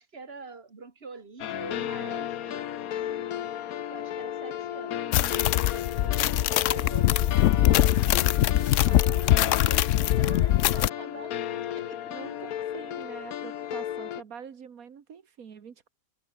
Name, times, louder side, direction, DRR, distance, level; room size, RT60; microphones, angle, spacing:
voice 1, 0.0-2.7 3.9-6.3 6.6-12.1, right 4 dB, 45° right, 2.7 m, -46 dB
sound 1, 1.4-14.2, left 11 dB, 85° left, 1.3 m, -34 dB
sound 2, 5.1-10.9, left 13 dB, 70° left, 0.9 m, -22 dB
voice 2, 12.1-15.9, right 7 dB, 85° right, 1.9 m, -45 dB
omnidirectional pair, 1.5 m